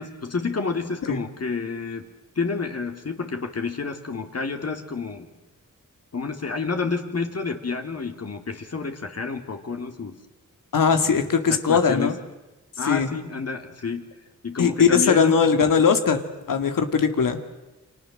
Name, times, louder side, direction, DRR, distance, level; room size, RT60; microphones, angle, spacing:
voice 1, 0.0-2.1 2.3-5.3 6.1-10.1 11.0-12.1 12.8-14.0 14.4-15.4, left 4 dB, 50° left, 5 dB, 3.0 m, -29 dB
voice 2, 10.7-12.1 12.8-13.1 14.6-16.2 16.5-17.4, left 6 dB, 85° left, 8 dB, 2.4 m, -20 dB
30.0 x 25.5 x 7.6 m, 1.1 s
wide cardioid pair, 85°, 32 cm